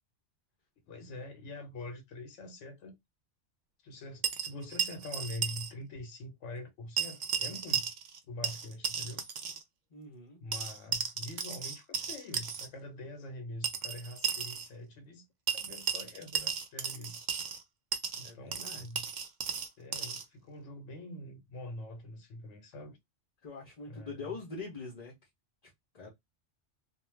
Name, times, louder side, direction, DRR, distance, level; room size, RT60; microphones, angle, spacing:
voice 1, 0.9-3.0 3.8-7.9 8.3-9.2 10.4-17.3 18.2-19.1 19.8-23.0 23.9-24.4 26.0-26.1, left 1 dB, 90° left, 1.0 m, -44 dB
sound 1, 4.2-5.7 6.0-6.1 7.0-8.2 8.4-9.6 10.5-12.7 13.6-14.7 15.5-17.6 17.9-20.3, right 7 dB, 60° right, 0.5 m, -35 dB
voice 2, 9.9-10.4 18.2-18.8 23.4-25.1 25.9-26.1, left 3 dB, 40° left, 0.7 m, -43 dB
2.4 x 2.2 x 3.1 m
omnidirectional pair, 1.2 m